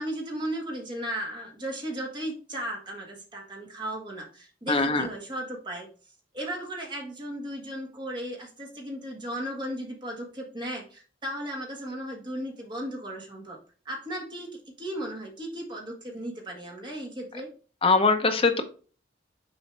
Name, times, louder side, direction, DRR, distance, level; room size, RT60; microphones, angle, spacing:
voice 1, 0.0-5.9 6.3-13.6 13.8-14.5 14.8-17.5, right 1 dB, 25° right, 0 dB, 1.7 m, -35 dB
voice 2, 4.7-5.1 17.8-18.6, left 3 dB, 30° left, 6 dB, 0.7 m, -22 dB
6.8 x 4.3 x 3.2 m, 0.39 s
head